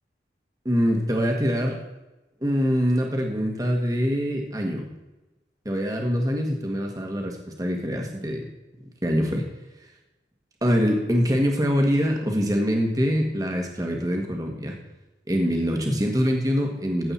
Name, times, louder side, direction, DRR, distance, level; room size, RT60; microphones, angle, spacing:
voice 1, 0.6-1.8 2.4-4.9 5.6-8.5 9.0-9.4 10.6-14.8 15.3-17.1, equal, 20° right, 2 dB, 1.6 m, -24 dB
15.5 x 7.8 x 4.3 m, 1.0 s
head